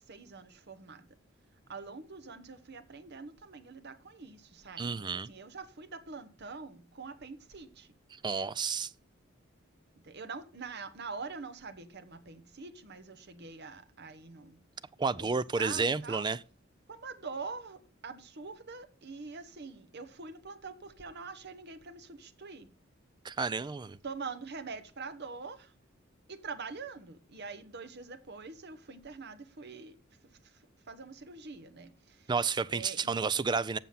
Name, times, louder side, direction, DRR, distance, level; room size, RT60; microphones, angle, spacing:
voice 1, 0.1-1.0 1.7-4.9 5.3-7.9 10.1-14.5 15.6-16.2 16.9-22.7 24.0-25.7 26.3-30.0 30.9-31.9 32.7-33.1, right 4 dB, 55° right, 1.0 m, -44 dB
voice 2, 4.8-5.3 8.1-8.9 15.0-16.4 23.2-24.0 32.3-33.8, right 4 dB, 20° right, 0.4 m, -31 dB
7.6 x 7.0 x 5.6 m
head